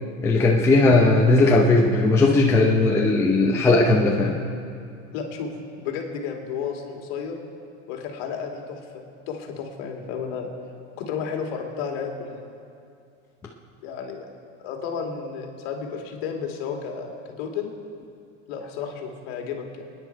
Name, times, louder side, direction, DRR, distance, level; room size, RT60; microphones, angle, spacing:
voice 1, 0.2-4.4, left 2 dB, 5° left, -1 dB, 0.6 m, -18 dB
voice 2, 5.1-7.4 7.9-10.5 11.0-12.4 13.8-14.3 14.6-17.1 17.4-17.7 18.5-19.6, left 6 dB, 55° left, 2 dB, 2.5 m, -32 dB
28.0 x 10.0 x 4.6 m, 2.4 s
supercardioid pair, 165°, 37 cm